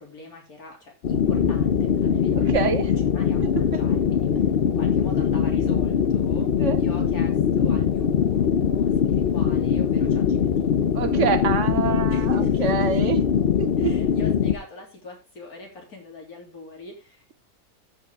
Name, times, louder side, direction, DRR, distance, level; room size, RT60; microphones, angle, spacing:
voice 1, 0.0-2.8 3.1-4.4 4.7-6.5 6.8-10.8 12.1-13.1 13.8-17.3, left 3 dB, 75° left, 1 dB, 3.5 m, -42 dB
sound 1, 1.0-14.6, left 7 dB, 50° left, 0.8 m, -22 dB
voice 2, 2.3-2.9 3.4-3.8 6.6-6.8 10.9-13.2 13.6-13.9, right 7 dB, 60° right, 12 dB, 1.0 m, -26 dB
13.5 x 5.6 x 3.5 m, 0.27 s
omnidirectional pair, 1.6 m